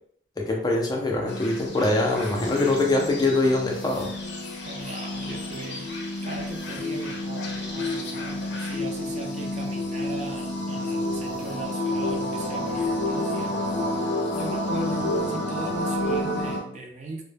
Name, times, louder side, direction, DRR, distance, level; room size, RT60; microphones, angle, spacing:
voice 1, 0.4-4.1, left 2 dB, 20° left, 0 dB, 0.4 m, -23 dB
sound 1, 1.3-16.6, left 1 dB, 80° left, 0.5 m, -29 dB
voice 2, 4.6-5.9 6.2-13.5 14.3-17.2, right 2 dB, 40° right, 1 dB, 0.4 m, -37 dB
2.1 x 2.0 x 3.2 m, 0.66 s
head